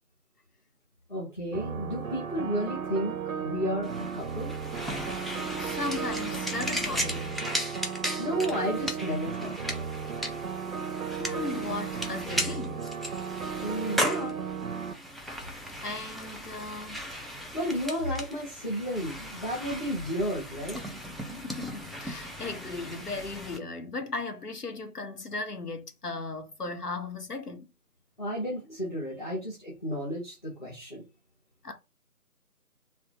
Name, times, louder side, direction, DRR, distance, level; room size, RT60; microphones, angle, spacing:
voice 1, 1.1-4.5 8.2-9.8 13.6-14.4 17.5-20.8 28.2-31.0, equal, 30° left, 0.9 m, -32 dB
sound 1, 1.5-14.9, right 6 dB, 65° right, 0.5 m, -35 dB
sound 2, 3.8-23.6, equal, ahead, 0.3 m, -37 dB
voice 2, 5.6-7.4 11.2-12.9 15.8-17.1 21.1-27.7 31.6-31.7, left 3 dB, 80° left, 1.0 m, -37 dB
3.3 x 2.1 x 2.9 m
figure-of-eight pair, 165°, 46 cm